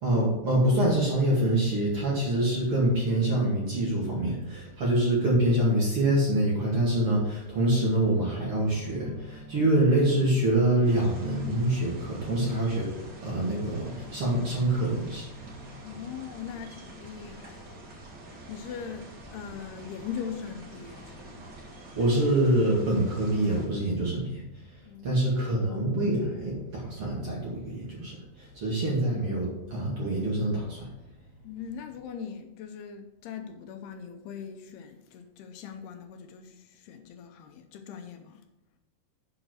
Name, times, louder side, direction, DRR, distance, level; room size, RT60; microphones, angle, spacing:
voice 1, 0.0-12.9 13.2-15.9 22.0-24.7 25.0-30.9, right 1 dB, 40° right, 2.3 m, -26 dB
sound 1, 7.8-15.1, left 1 dB, 30° left, 2.7 m, -49 dB
sound 2, 10.8-23.7, right 1 dB, 65° right, 1.1 m, -46 dB
voice 2, 15.8-17.8 18.5-21.5 24.9-25.4 31.4-38.4, left 7 dB, 80° left, 2.7 m, -41 dB
7.9 x 5.7 x 6.2 m
omnidirectional pair, 4.8 m